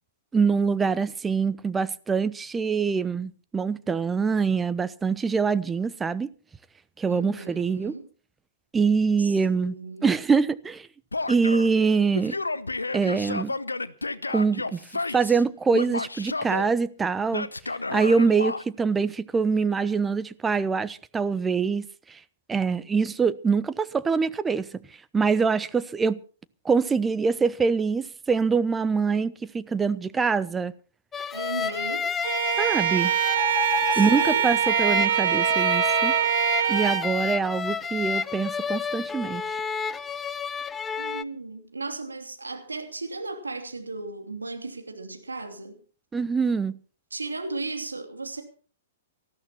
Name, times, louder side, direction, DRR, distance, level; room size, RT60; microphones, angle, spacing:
voice 1, 0.3-6.3 7.0-7.9 8.7-9.7 10.0-10.9 11.3-12.4 12.9-13.5 14.3-14.8 15.1-17.5 17.9-22.2 22.5-24.7 25.1-26.2 26.6-30.7 32.6-33.1 34.0-36.1 36.7-39.6 46.1-46.8, right 5 dB, 15° right, 0.7 m, -24 dB
voice 2, 7.1-8.1 9.2-10.1 31.3-32.1 33.8-34.6 41.0-45.8 47.1-48.4, right 3 dB, 90° right, 2.8 m, -36 dB
Male speech man speaking / Yell, 11.1-11.7 12.1-15.4 15.7-16.7 17.3-18.6, left 3 dB, 90° left, 0.9 m, -31 dB
sound 1, 31.1-41.2, left 5 dB, 15° left, 0.7 m, -30 dB
Bowed string instrument, 32.2-37.1, right 10 dB, 65° right, 1.2 m, -24 dB
18.5 x 13.5 x 4.3 m
figure-of-eight pair, 115°, 0 cm